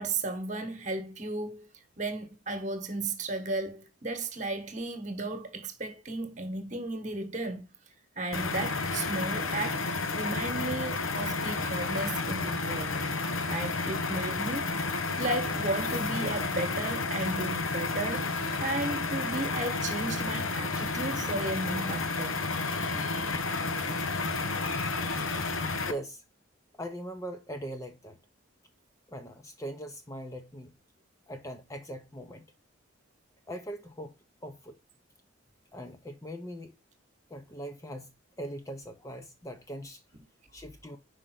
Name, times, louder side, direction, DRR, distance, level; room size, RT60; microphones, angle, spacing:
voice 1, 0.0-1.7 2.0-7.7 8.2-13.0 13.5-14.7 15.2-18.3 18.6-22.4, right 2 dB, 35° right, 1.2 m, -34 dB
sound 1, 8.3-25.9, left 3 dB, 85° left, 0.9 m, -31 dB
voice 2, 25.3-26.2 26.8-28.2 29.1-30.7 31.3-32.5 33.5-34.2 34.4-34.8 35.7-36.7 37.3-40.0 40.5-41.0, right 1 dB, 15° left, 0.6 m, -41 dB
5.1 x 5.0 x 5.7 m
head